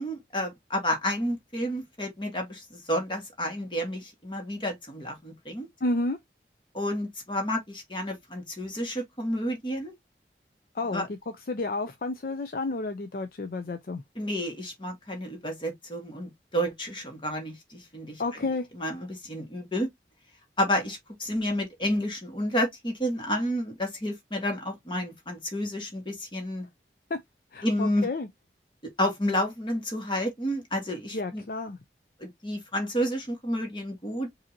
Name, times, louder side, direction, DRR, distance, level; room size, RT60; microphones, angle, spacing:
voice 1, 0.0-5.7 6.7-9.9 10.9-11.1 14.1-18.2 18.7-19.9 20.6-26.7 27.6-28.1 29.0-31.4 32.2-34.3, equal, 25° left, 1.6 m, -30 dB
voice 2, 5.8-6.2 10.8-11.0 11.5-14.0 18.2-18.7 27.1-27.2 27.5-28.3 31.1-31.8, left 2 dB, 50° left, 0.5 m, -30 dB
5.1 x 2.7 x 2.8 m
head